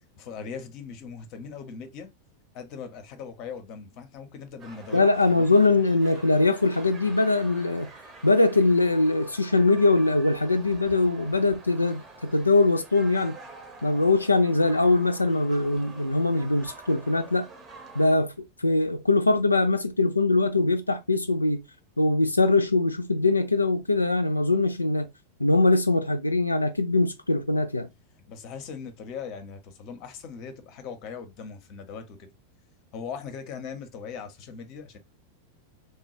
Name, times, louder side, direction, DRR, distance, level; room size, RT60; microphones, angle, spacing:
voice 1, 0.2-2.1 2.5-5.6 28.1-32.3 32.9-35.0, left 6 dB, 40° left, 0.6 m, -40 dB
sound 1, 4.6-18.2, right 3 dB, 25° right, 0.8 m, -47 dB
voice 2, 4.9-7.9 8.2-13.4 13.8-17.5 18.0-18.3 18.6-21.6 22.0-25.1 25.4-27.9, left 2 dB, 85° left, 0.3 m, -22 dB
3.2 x 2.2 x 2.7 m
figure-of-eight pair, 90°, 0 cm